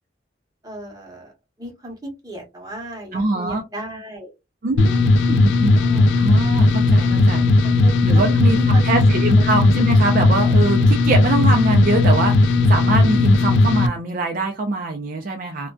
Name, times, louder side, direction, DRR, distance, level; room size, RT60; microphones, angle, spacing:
voice 1, 0.6-1.3 1.6-4.3 5.7-6.2 7.6-9.0 9.3-9.5, right 1 dB, 20° right, -1 dB, 1.0 m, -35 dB
voice 2, 3.1-3.6 4.6-5.8 6.2-7.4 8.0-8.6 8.8-15.7, right 2 dB, 50° right, 3 dB, 0.4 m, -23 dB
sound 1, 4.8-13.9, left 2 dB, 90° left, 0.3 m, -16 dB
2.5 x 2.2 x 2.2 m, 0.23 s
head